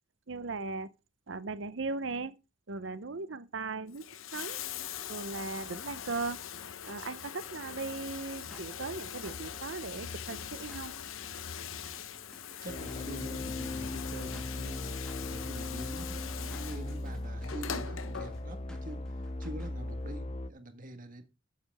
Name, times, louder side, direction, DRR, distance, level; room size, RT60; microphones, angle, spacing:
voice 1, 0.3-0.9 1.3-2.3 2.7-4.1 4.3-4.6 5.1-6.4 6.9-10.9, right 3 dB, 60° right, 0.8 m, -38 dB
Bathtub (filling or washing), 3.8-18.8 19.9-20.0, left 8 dB, 75° left, 0.9 m, -42 dB
sound 1, 8.1-19.7, left 1 dB, 5° left, 1.9 m, -58 dB
voice 2, 12.6-21.2, right 1 dB, 40° right, 1.6 m, -45 dB
sound 2, 12.7-20.5, left 2 dB, 30° left, 0.6 m, -38 dB
13.0 x 7.9 x 3.5 m
head